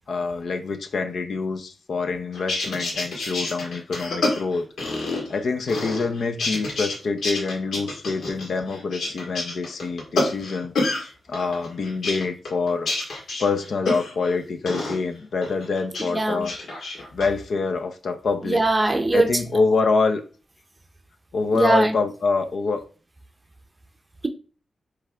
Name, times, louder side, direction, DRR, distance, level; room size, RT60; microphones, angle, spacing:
voice 1, 0.1-4.7 4.9-16.6 16.8-18.6 19.1-20.2 21.3-22.8, left 4 dB, 60° left, 0.7 m, -26 dB
sound 1, 2.3-5.4 5.7-7.0 7.2-11.0 11.3-14.3 14.7-15.0 15.4-16.1 16.4-17.3, left 2 dB, 85° left, 1.9 m, -28 dB
voice 2, 16.1-16.5 18.4-19.4 21.5-21.9, right 2 dB, 15° right, 0.6 m, -21 dB
7.9 x 3.4 x 3.5 m
wide cardioid pair, 180°, 0 cm